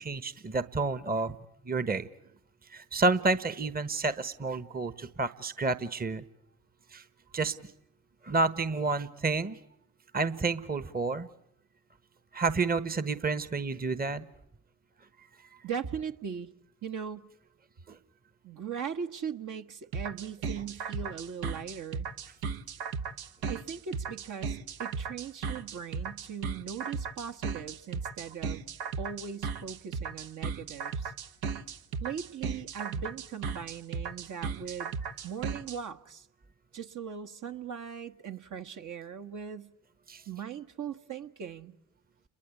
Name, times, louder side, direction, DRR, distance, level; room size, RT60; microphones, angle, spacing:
voice 1, 0.0-1.3 1.6-2.1 2.7-6.2 6.9-7.0 7.3-7.5 8.2-9.6 10.1-11.3 12.3-14.2 17.9-18.0 40.1-40.2, right 3 dB, 25° right, 14 dB, 1.2 m, -30 dB
voice 2, 15.6-16.5 16.8-17.3 18.4-22.1 23.5-28.6 29.0-31.1 32.0-35.0 35.2-36.3 36.7-39.7 40.3-41.7, right 7 dB, 50° right, 7 dB, 1.4 m, -39 dB
sound 1, 19.9-35.8, right 5 dB, 70° right, 1.2 m, -35 dB
30.0 x 22.0 x 8.4 m, 0.78 s
hypercardioid pair, 45°, 38 cm